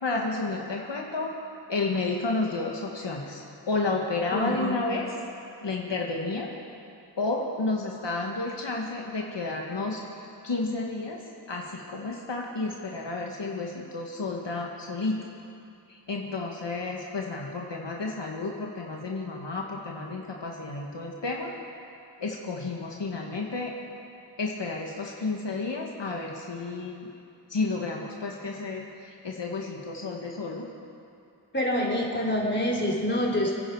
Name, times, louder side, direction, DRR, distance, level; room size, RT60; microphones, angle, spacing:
voice 1, 0.0-1.3 1.7-3.4 3.7-5.1 5.6-6.5 7.2-10.0 10.4-11.2 11.5-15.3 15.9-21.5 22.2-23.7 24.4-27.1 27.5-30.6, left 3 dB, 85° left, -1 dB, 1.6 m, -31 dB
voice 2, 4.3-4.8 31.5-33.6, left 1 dB, 25° left, -4 dB, 3.8 m, -26 dB
28.0 x 10.5 x 4.8 m, 2.5 s
wide cardioid pair, 45°, 42 cm